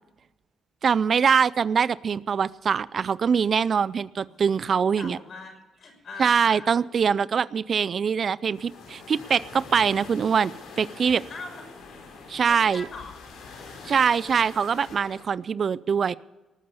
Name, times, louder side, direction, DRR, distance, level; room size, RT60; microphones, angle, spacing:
voice 1, 0.8-5.2 6.2-11.2 12.3-12.9 13.8-16.1, right 6 dB, 50° right, 20 dB, 0.4 m, -23 dB
voice 2, 4.7-6.9 11.3-11.6 12.5-13.2, left 3 dB, 55° left, 4 dB, 5.6 m, -41 dB
sound 1, 8.5-15.2, left 4 dB, 80° left, 4.4 m, -44 dB
19.5 x 8.8 x 6.9 m, 1.2 s
cardioid pair, 90°, 0 cm